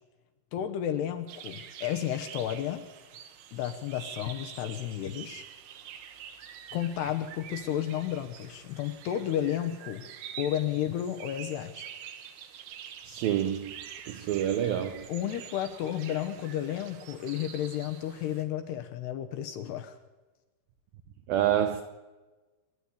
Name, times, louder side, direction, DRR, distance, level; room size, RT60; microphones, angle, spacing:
voice 1, 0.5-2.9 3.5-5.4 6.7-10.1 10.4-11.8 15.1-20.0, left 10 dB, 75° left, 2.6 m, -32 dB
sound 1, 1.3-18.4, right 9 dB, 75° right, 3.8 m, -46 dB
voice 2, 13.0-13.7 14.1-15.1 21.3-21.8, right 10 dB, 90° right, 2.0 m, -27 dB
28.5 x 11.0 x 8.5 m
omnidirectional pair, 5.7 m